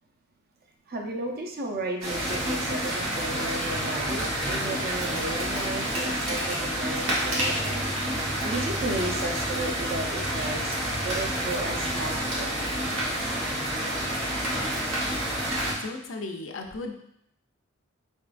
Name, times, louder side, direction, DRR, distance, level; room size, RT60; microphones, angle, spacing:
voice 1, 0.9-12.5, right 2 dB, 50° right, 2 dB, 0.5 m, -34 dB
sound 1, 2.0-15.7, right 1 dB, 80° right, 1.1 m, -29 dB
voice 2, 15.8-16.9, left 2 dB, 65° left, 3 dB, 0.5 m, -35 dB
4.0 x 3.5 x 2.4 m, 0.74 s
head